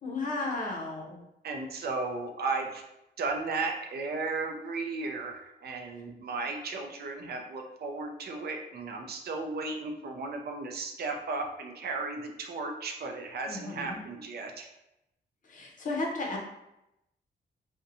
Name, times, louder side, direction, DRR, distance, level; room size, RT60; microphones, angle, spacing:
voice 1, 0.0-1.2 1.7-1.8 13.5-14.0 15.4-16.4, left 2 dB, 45° left, -1 dB, 0.6 m, -34 dB
voice 2, 1.4-2.8 3.2-14.7, right 3 dB, 60° right, 4 dB, 0.4 m, -35 dB
2.6 x 2.1 x 2.6 m, 0.87 s
wide cardioid pair, 120°, 19 cm